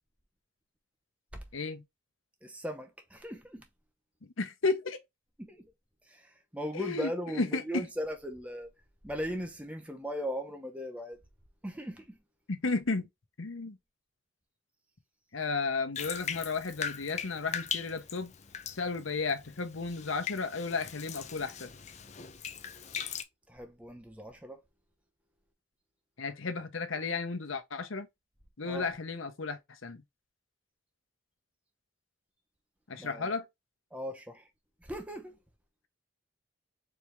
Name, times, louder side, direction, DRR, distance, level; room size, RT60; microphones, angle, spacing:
voice 1, 1.5-1.8 4.4-5.0 6.7-7.8 12.5-13.1 13.4-13.8 15.3-18.3 18.7-21.7 26.2-28.1 28.6-30.0 32.9-33.4, left 4 dB, 85° left, 0.9 m, -33 dB
voice 2, 2.4-3.6 5.4-5.7 6.1-8.7 9.0-11.2 11.6-12.2 23.5-24.6 28.6-28.8 33.0-33.3 33.9-34.5 34.8-35.4, equal, 5° right, 0.7 m, -38 dB
Bathtub (filling or washing), 16.0-23.2, left 7 dB, 35° left, 0.5 m, -40 dB
4.4 x 3.4 x 3.1 m
head